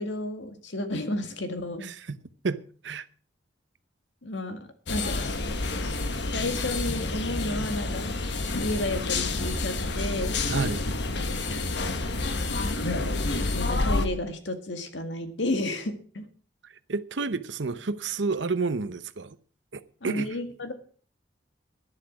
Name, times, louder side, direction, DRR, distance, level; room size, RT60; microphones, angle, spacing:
voice 1, 0.0-1.9 4.2-4.6 4.9-5.2 5.8-6.0 6.2-8.1 8.5-10.4 13.5-16.3 20.0-20.7, left 1 dB, 85° left, 1.9 m, -32 dB
voice 2, 1.8-2.2 2.4-3.1 10.5-10.9 16.6-19.4 19.7-20.3, right 4 dB, 80° right, 0.8 m, -30 dB
sound 1, 4.9-14.1, left 2 dB, 65° left, 1.3 m, -29 dB
11.5 x 11.0 x 6.0 m
head